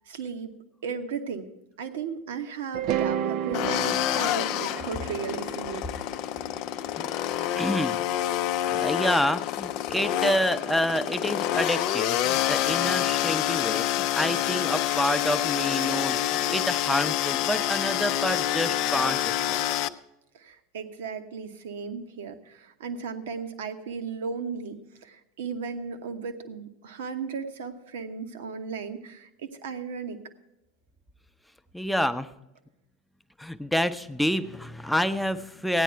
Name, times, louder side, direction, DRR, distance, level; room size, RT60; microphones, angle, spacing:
voice 1, 0.1-0.5 0.8-1.5 1.8-5.9 20.3-30.2, right 5 dB, 70° right, 8 dB, 1.0 m, -36 dB
sound 1, 2.7-6.9, right 9 dB, 50° right, 0.4 m, -32 dB
sound 2, 3.5-19.9, left 12 dB, 55° left, 0.4 m, -27 dB
voice 2, 7.4-8.0 8.7-19.6 31.7-32.3 33.4-35.8, equal, ahead, 9 dB, 0.7 m, -28 dB
15.0 x 10.0 x 4.5 m, 0.88 s
figure-of-eight pair, 80°, 0 cm